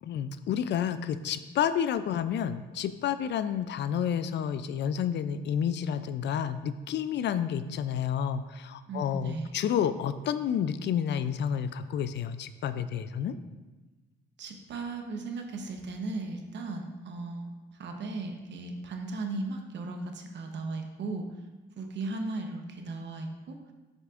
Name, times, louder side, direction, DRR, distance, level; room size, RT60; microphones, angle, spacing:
voice 1, 0.0-13.4, left 8 dB, 60° left, 12 dB, 0.4 m, -30 dB
voice 2, 8.9-9.6 14.4-21.3 21.8-23.6, right 3 dB, 65° right, 4 dB, 0.9 m, -36 dB
7.3 x 6.5 x 2.5 m, 1.2 s
cardioid pair, 90°, 20 cm